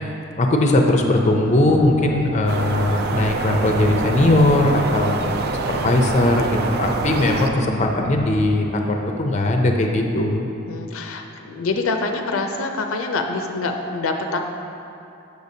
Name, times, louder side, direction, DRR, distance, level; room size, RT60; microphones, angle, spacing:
voice 1, 0.4-5.2 5.7-10.5, left 1 dB, 35° left, 2 dB, 0.5 m, -19 dB
Hammer, 1.3-2.7 3.2-4.6 5.2-7.2 7.8-8.7, equal, 25° right, 1.0 m, -32 dB
sound 1, 2.5-7.5, right 3 dB, 50° right, 0.4 m, -26 dB
voice 2, 10.7-14.4, left 3 dB, 90° left, 4 dB, 0.5 m, -26 dB
6.6 x 6.5 x 2.7 m, 2.8 s
head